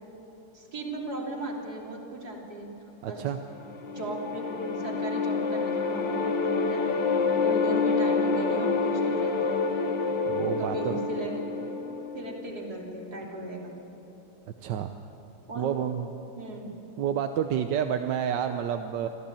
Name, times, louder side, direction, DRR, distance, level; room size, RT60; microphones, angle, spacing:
voice 1, 0.5-2.7 3.1-3.2 3.9-6.9 7.4-9.7 10.6-11.8 12.1-13.9 15.5-15.9 16.4-16.7 19.0-19.1, right 1 dB, 45° right, -3 dB, 3.8 m, -37 dB
voice 2, 3.0-3.4 10.3-11.0 14.6-14.9 15.5-16.1 17.0-19.1, right 9 dB, 65° right, 6 dB, 1.3 m, -29 dB
sound 1, 3.5-12.7, left 4 dB, 60° left, 1.8 m, -28 dB
24.5 x 15.0 x 8.8 m, 3.0 s
omnidirectional pair, 2.4 m